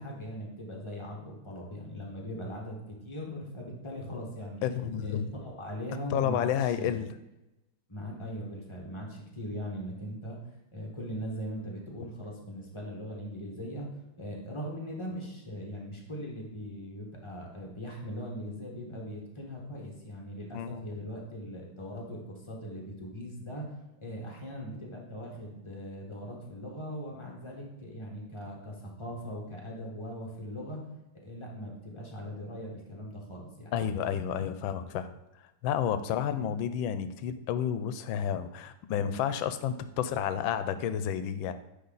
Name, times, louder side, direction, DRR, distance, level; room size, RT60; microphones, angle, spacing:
voice 1, 0.0-2.8 3.0-4.6 5.0-7.0 7.9-10.4 10.7-13.9 14.2-23.7 24.0-30.8 31.2-33.7, equal, 15° left, -1 dB, 1.2 m, -40 dB
voice 2, 4.6-5.3 6.1-7.1 20.5-20.8 33.7-35.1 35.6-41.5, left 9 dB, 85° left, 12 dB, 1.3 m, -30 dB
9.5 x 3.5 x 3.9 m, 0.95 s
omnidirectional pair, 2.1 m